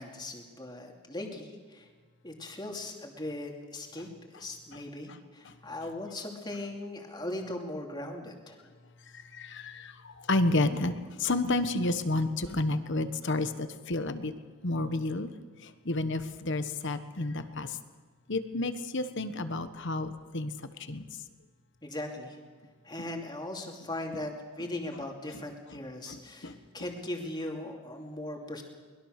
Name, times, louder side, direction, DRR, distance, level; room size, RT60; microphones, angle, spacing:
voice 1, 0.0-1.9 2.2-8.6 21.8-22.4 22.8-28.6, left 1 dB, 20° left, 1 dB, 2.8 m, -39 dB
voice 2, 9.1-14.3 14.6-15.3 15.6-17.8 18.3-20.5 20.9-21.0 26.1-26.6, left 2 dB, 55° left, 10 dB, 1.3 m, -31 dB
23.5 x 21.0 x 6.6 m, 1.5 s
head